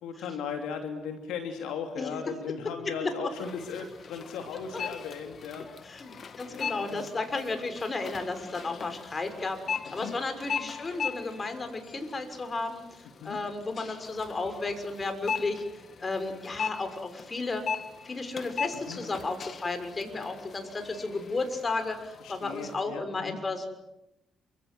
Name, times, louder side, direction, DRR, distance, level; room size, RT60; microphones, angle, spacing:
voice 1, 0.0-5.7 6.5-7.1 10.0-10.1 13.2-13.4 18.9-19.0 22.2-23.4, left 6 dB, 80° left, 5 dB, 2.9 m, -37 dB
sound 1, 3.3-22.8, left 6 dB, 55° left, 2.0 m, -39 dB
voice 2, 5.8-17.6 18.0-23.7, left 3 dB, 35° left, 8 dB, 6.2 m, -33 dB
28.5 x 25.5 x 7.9 m, 0.90 s
hypercardioid pair, 50°, 0 cm